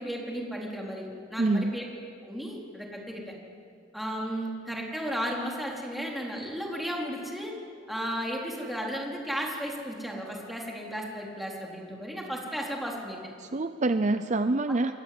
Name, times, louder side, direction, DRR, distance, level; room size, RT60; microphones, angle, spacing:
voice 1, 0.0-1.8 2.2-3.3 3.9-7.6 7.9-13.2, equal, ahead, -2 dB, 4.2 m, -34 dB
voice 2, 1.4-1.8 13.4-14.9, right 2 dB, 40° right, 10 dB, 0.6 m, -26 dB
28.5 x 21.5 x 7.9 m, 2.3 s
head